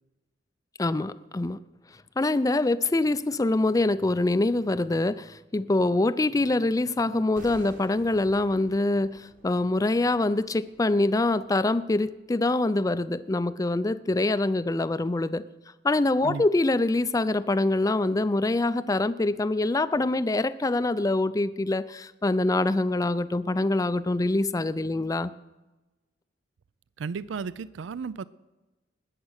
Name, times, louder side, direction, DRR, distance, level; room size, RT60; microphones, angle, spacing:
voice 1, 0.8-1.6 2.2-15.4 15.8-25.3, left 2 dB, 20° left, 15 dB, 0.4 m, -25 dB
sound 1, 7.4-12.4 12.6-12.8, right 1 dB, 45° right, 1.9 m, -52 dB
voice 2, 27.0-28.2, right 5 dB, 85° right, 18 dB, 0.4 m, -34 dB
20.0 x 7.4 x 6.4 m, 1.1 s
head